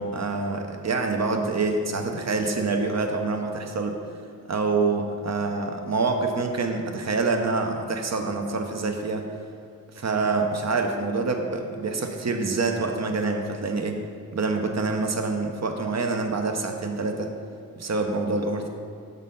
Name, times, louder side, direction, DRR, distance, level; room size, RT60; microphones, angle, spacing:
voice 1, 0.0-4.0 4.5-9.3 9.9-14.0 14.3-17.3 17.8-18.7, right 3 dB, 50° right, 4 dB, 0.8 m, -26 dB
6.3 x 4.0 x 5.5 m, 2.3 s
cardioid pair, 40°, 36 cm